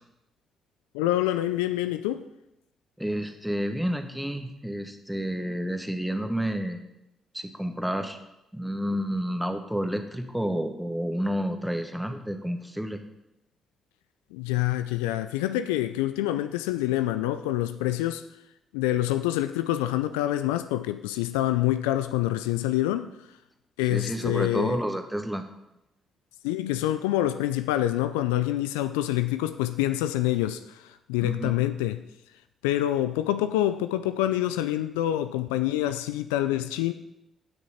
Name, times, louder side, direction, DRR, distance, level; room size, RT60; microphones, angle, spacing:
voice 1, 0.9-2.2 14.3-18.2 18.7-23.1 23.8-24.8 26.4-32.0 32.6-36.9, left 14 dB, 80° left, 0.4 m, -26 dB
voice 2, 3.0-6.8 7.3-8.2 8.5-13.0 23.9-25.4 31.2-31.6, equal, 5° right, 1.5 m, -30 dB
15.0 x 6.5 x 4.2 m
hypercardioid pair, 45°, 0 cm